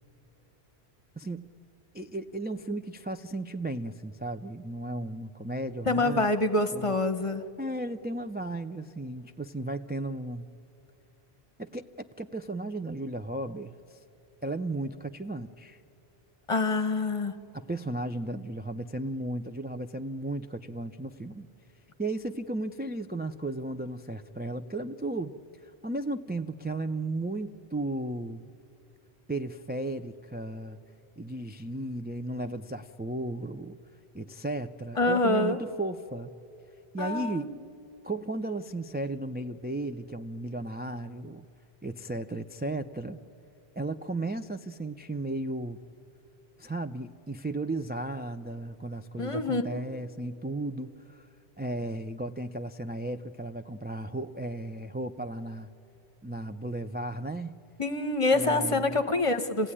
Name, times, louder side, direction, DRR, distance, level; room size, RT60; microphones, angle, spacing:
voice 1, 1.2-1.5 1.9-6.3 6.7-6.9 7.6-10.5 11.6-11.9 12.2-14.0 14.4-15.8 17.5-21.5 22.0-25.3 25.6-28.5 29.3-30.8 31.2-33.8 34.1-36.3 36.9-37.5 38.0-41.5 41.8-43.2 43.8-45.8 46.6-51.3 51.6-55.7 56.2-57.6 58.3-59.0, right 2 dB, 15° right, 6 dB, 0.3 m, -35 dB
voice 2, 5.8-7.5 16.5-17.4 35.0-35.6 37.0-37.5 49.2-49.6 57.8-59.7, left 2 dB, 30° left, 8 dB, 1.1 m, -26 dB
28.5 x 16.5 x 9.9 m, 2.8 s
omnidirectional pair, 1.1 m